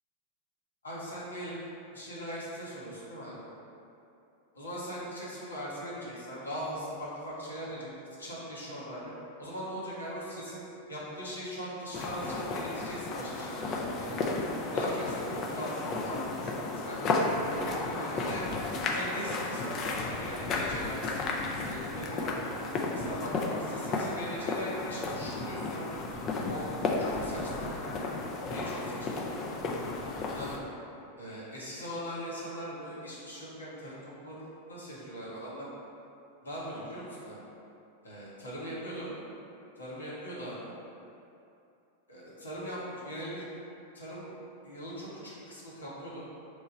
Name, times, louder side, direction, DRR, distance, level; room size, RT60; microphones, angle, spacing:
voice 1, 0.8-1.6 1.9-3.5 4.5-9.1 9.4-10.6 10.9-14.4 14.7-18.5 18.9-22.5 22.9-26.0 26.4-26.7 27.0-28.0 28.5-29.3 30.3-30.6 31.2-35.7 36.4-37.4 38.0-39.1 39.8-40.7 42.1-43.5 43.9-44.3 44.6-46.3, equal, 75° left, -8 dB, 0.9 m, -40 dB
sound 1, 11.9-30.6, left 3 dB, 30° left, 0.4 m, -33 dB
3.1 x 2.2 x 4.2 m, 2.7 s
figure-of-eight pair, 90°, 0 cm